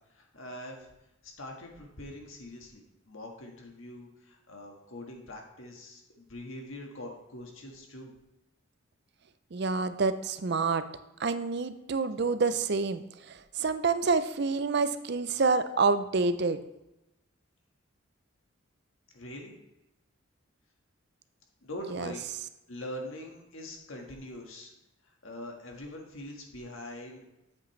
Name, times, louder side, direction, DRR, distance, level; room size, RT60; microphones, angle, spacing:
voice 1, 0.1-0.9 1.2-8.1 19.1-19.5 21.6-22.3 22.7-24.7 25.2-27.2, left 1 dB, 75° left, 1 dB, 1.6 m, -43 dB
voice 2, 9.5-10.8 11.2-16.6 21.9-22.1, right 4 dB, 50° right, 11 dB, 0.5 m, -28 dB
8.4 x 7.6 x 3.2 m, 0.92 s
head